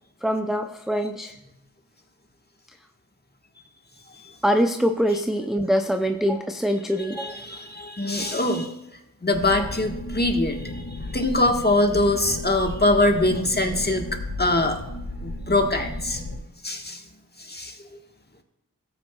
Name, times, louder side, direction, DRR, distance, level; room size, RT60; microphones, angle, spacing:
voice 1, 0.2-1.4 4.4-7.5 9.6-9.7, equal, ahead, 5 dB, 0.5 m, -24 dB
voice 2, 7.2-8.7 9.2-14.1 14.4-14.8 15.2-16.2 16.6-17.0 17.4-17.8, left 2 dB, 30° left, 3 dB, 1.4 m, -23 dB
sound 1, 9.3-16.4, left 1 dB, 85° left, 1.7 m, -34 dB
sound 2, 12.2-13.8 14.1-14.2, right 1 dB, 45° right, 2.5 m, -46 dB
16.5 x 8.7 x 2.3 m, 0.88 s
wide cardioid pair, 55°, 35 cm